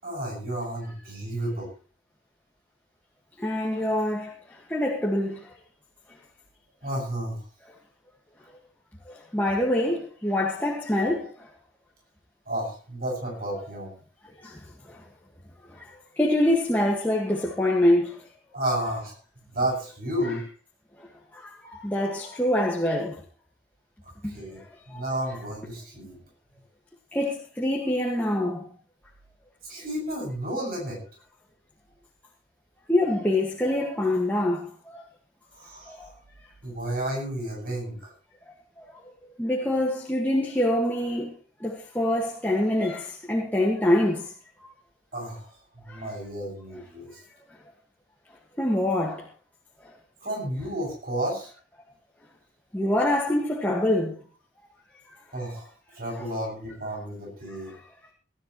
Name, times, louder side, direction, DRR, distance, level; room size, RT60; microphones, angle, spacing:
voice 1, 0.0-1.7 6.8-7.4 12.5-13.9 18.5-19.2 19.5-20.4 24.2-24.6 24.9-26.2 29.7-31.0 35.5-36.1 36.6-38.1 45.1-47.1 50.2-51.5 55.3-55.7 55.9-57.7, right 1 dB, 50° right, 7.2 m, -32 dB
voice 2, 3.4-4.3 4.7-5.5 9.1-11.3 14.4-14.6 14.9-15.0 15.8-15.9 16.1-18.1 21.3-23.2 24.2-24.3 24.9-25.0 27.1-28.7 32.9-35.0 35.9-36.1 38.8-38.9 39.4-41.3 41.6-44.3 45.9-46.1 48.6-49.2 52.7-54.1 57.7-57.8, left 1 dB, 10° left, 1.9 m, -25 dB
19.5 x 13.0 x 3.2 m
head